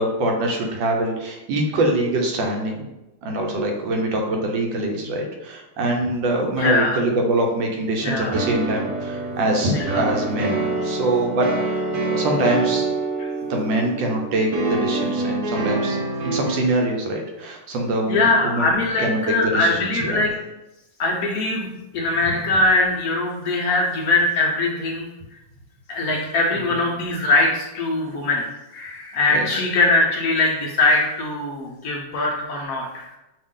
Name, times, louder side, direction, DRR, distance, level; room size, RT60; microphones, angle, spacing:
voice 1, 0.0-2.9 3.2-12.9 13.5-16.0 16.2-18.7 19.0-20.2 29.3-29.6, right 1 dB, 75° right, 1 dB, 1.4 m, -24 dB
voice 2, 6.6-7.0 8.0-8.4 9.7-10.0 13.2-13.3 18.1-20.3 21.0-21.7 21.9-25.1 25.9-28.5 28.7-33.1, left 2 dB, 75° left, -1 dB, 0.8 m, -21 dB
sound 1, 8.3-16.6, right 3 dB, 60° right, 1.1 m, -26 dB
5.5 x 2.4 x 3.6 m, 0.98 s
omnidirectional pair, 2.2 m